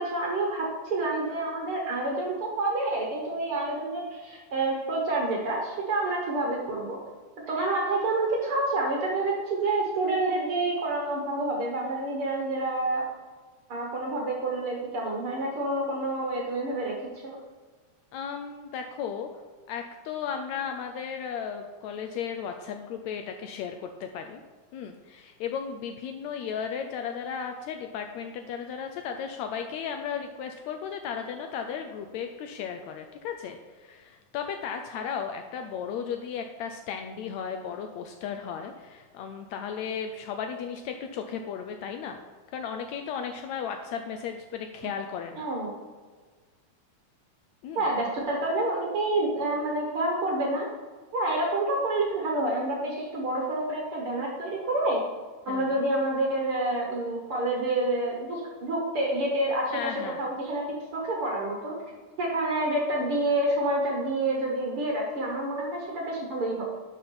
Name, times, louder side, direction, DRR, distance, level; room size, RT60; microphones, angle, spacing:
voice 1, 0.0-7.0 7.5-13.1 13.7-16.9 17.2-17.4 45.4-45.7 47.8-50.7 51.1-55.0 55.5-60.7 60.9-61.7 62.2-66.6, right 2 dB, 55° right, -1 dB, 1.7 m, -28 dB
voice 2, 18.1-19.3 19.7-24.4 24.7-42.2 42.5-45.5 47.6-47.9 55.5-55.7 59.7-60.2, left 7 dB, 80° left, 5 dB, 1.7 m, -35 dB
11.5 x 5.5 x 4.3 m, 1.5 s
omnidirectional pair, 3.6 m